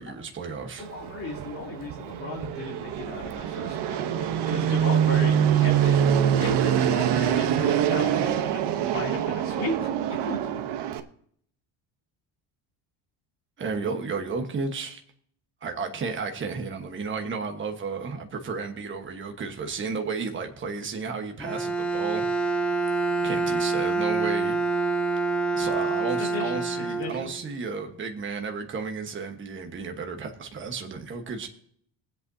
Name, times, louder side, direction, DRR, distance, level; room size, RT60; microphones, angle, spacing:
voice 1, 0.0-0.9 13.6-15.0 15.6-22.2 23.2-24.6 25.5-31.5, right 5 dB, 25° right, 4 dB, 1.2 m, -33 dB
Fixed-wing aircraft airplane, 0.8-11.0, right 9 dB, 60° right, 1.0 m, -25 dB
voice 2, 0.9-10.4 26.2-27.3, left 3 dB, 30° left, -2 dB, 2.8 m, -36 dB
Bowed string instrument, 21.4-27.6, right 3 dB, 5° left, 0.5 m, -26 dB
23.0 x 8.2 x 2.7 m, 0.65 s
cardioid pair, 165°, 45 cm